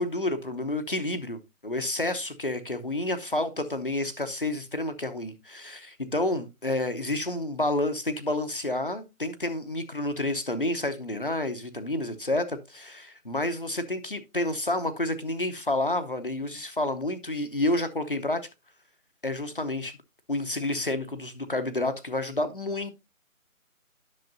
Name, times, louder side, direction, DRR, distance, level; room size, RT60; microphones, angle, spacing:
voice 1, 0.0-12.4 12.9-18.4 19.2-20.0 20.3-22.9, left 1 dB, 40° left, 0.8 m, -29 dB
10.5 x 6.4 x 2.5 m
figure-of-eight pair, 180°, 42 cm